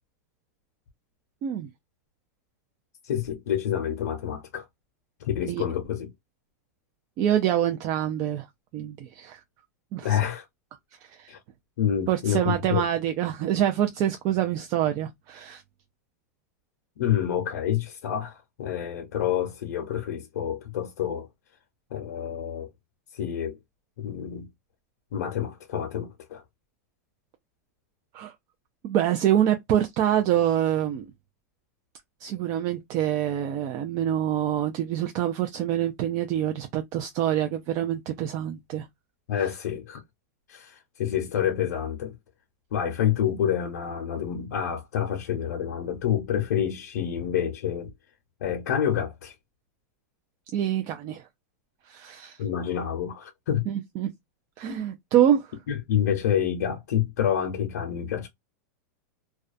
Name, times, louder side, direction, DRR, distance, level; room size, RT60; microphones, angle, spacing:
voice 1, 3.0-4.7 5.2-6.1 10.0-10.5 11.3-11.4 11.8-12.8 17.0-21.3 21.9-22.7 23.1-23.6 24.0-24.5 25.1-26.4 39.3-40.0 40.5-42.1 42.7-47.9 48.4-49.3 52.4-53.6 54.7-54.8 55.7-58.3, left 9 dB, 80° left, 0.6 m, -28 dB
voice 2, 7.2-8.5 8.7-9.4 9.9-10.2 11.1-11.3 12.1-15.6 28.1-28.3 28.8-31.0 32.2-38.9 50.5-51.2 51.9-52.4 53.7-54.1 54.6-55.5, right 11 dB, 40° right, 0.4 m, -26 dB
2.3 x 2.2 x 2.4 m
supercardioid pair, 135°, 9 cm